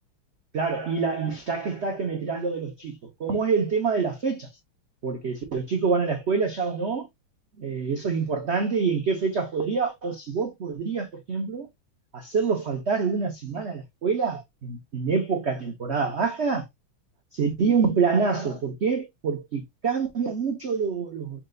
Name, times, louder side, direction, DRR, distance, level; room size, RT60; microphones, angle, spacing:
voice 1, 0.5-4.5 5.0-7.1 7.6-11.7 12.1-16.6 17.4-21.4, right 5 dB, 90° right, 0.5 m, -26 dB
4.4 x 3.8 x 2.2 m
omnidirectional pair, 2.3 m